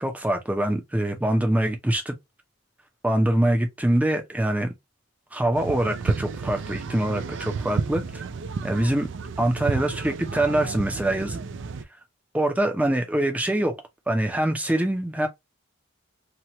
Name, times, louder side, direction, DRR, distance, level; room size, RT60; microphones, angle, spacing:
voice 1, 0.0-2.1 3.0-4.7 5.3-8.0 8.6-9.1 9.4-11.4 12.3-13.8 14.1-15.3, right 1 dB, 5° right, 0.5 m, -24 dB
sound 1, 5.5-11.8, right 4 dB, 60° right, 0.4 m, -31 dB
2.9 x 2.3 x 2.8 m
head